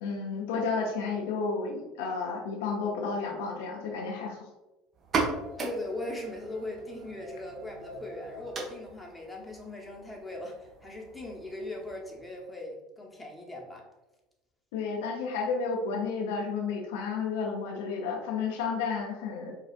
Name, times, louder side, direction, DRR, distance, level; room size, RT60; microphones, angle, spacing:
voice 1, 0.0-4.5 14.7-19.5, left 5 dB, 70° left, 0 dB, 0.6 m, -32 dB
sound 1, 5.0-12.4, right 4 dB, 40° right, 0.8 m, -38 dB
voice 2, 5.6-13.9, left 1 dB, 10° left, -1 dB, 0.9 m, -39 dB
4.6 x 2.4 x 2.5 m, 1.0 s
hypercardioid pair, 70°, 0 cm